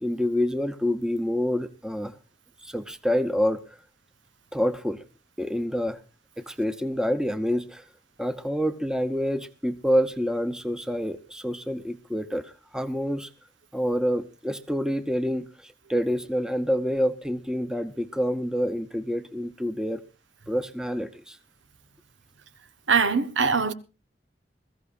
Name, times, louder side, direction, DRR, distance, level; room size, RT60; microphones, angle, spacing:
voice 1, 0.0-2.2 2.6-3.6 4.5-5.0 5.4-6.0 6.4-7.8 8.2-13.3 13.7-20.0 20.5-21.4, equal, 5° right, 0.8 m, -27 dB
voice 2, 22.9-23.7, right 5 dB, 90° right, 1.1 m, -22 dB
21.5 x 15.0 x 2.5 m
head